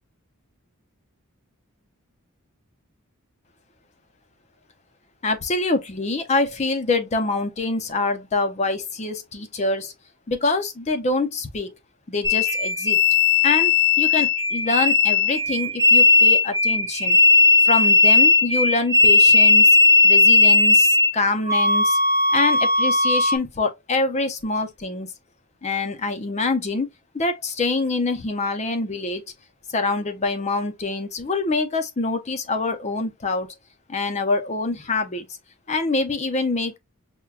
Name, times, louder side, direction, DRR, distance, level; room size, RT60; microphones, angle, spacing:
voice 1, 5.2-9.9 10.3-11.7 12.1-13.0 13.4-17.2 17.6-19.8 20.0-22.0 22.3-25.1 25.6-26.9 27.1-29.2 29.7-33.5 33.9-35.3 35.7-36.8, left 3 dB, 30° left, 0.5 m, -25 dB
sound 1, 12.2-21.1 21.5-23.4, left 3 dB, 15° right, 0.6 m, -16 dB
5.8 x 2.2 x 2.3 m
head